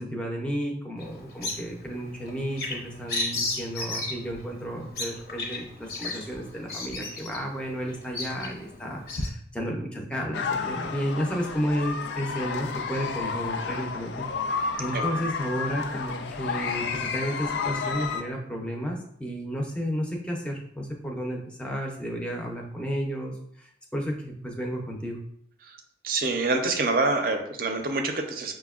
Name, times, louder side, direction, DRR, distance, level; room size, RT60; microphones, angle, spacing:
voice 1, 0.0-25.2, equal, 5° left, -1 dB, 0.5 m, -32 dB
Bird vocalization bird call bird song, 1.0-9.3, left 2 dB, 60° left, 0.7 m, -35 dB
sound 1, 10.3-18.2, left 5 dB, 80° left, 0.3 m, -31 dB
voice 2, 26.0-28.5, right 3 dB, 50° right, 5 dB, 0.5 m, -26 dB
5.8 x 2.1 x 2.3 m, 0.71 s
head